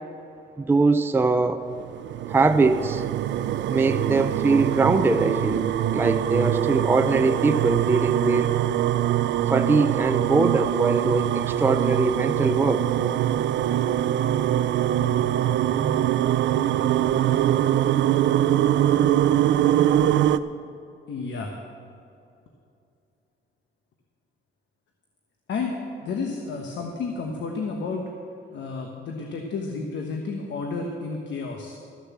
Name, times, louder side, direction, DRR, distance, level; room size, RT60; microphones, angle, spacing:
voice 1, 0.6-1.7 2.3-3.0 3.7-5.7 5.9-8.5 9.5-12.8, right 3 dB, 10° right, 8 dB, 0.5 m, -22 dB
sound 1, 1.7-20.4, right 11 dB, 65° right, 0.4 m, -23 dB
sound 2, 7.3-13.0, right 6 dB, 40° right, 1.2 m, -42 dB
voice 2, 21.1-21.5 25.5-28.0 28.5-31.8, left 4 dB, 65° left, 2 dB, 1.2 m, -31 dB
14.0 x 6.7 x 7.3 m, 2.6 s
cardioid pair, 90°, 20 cm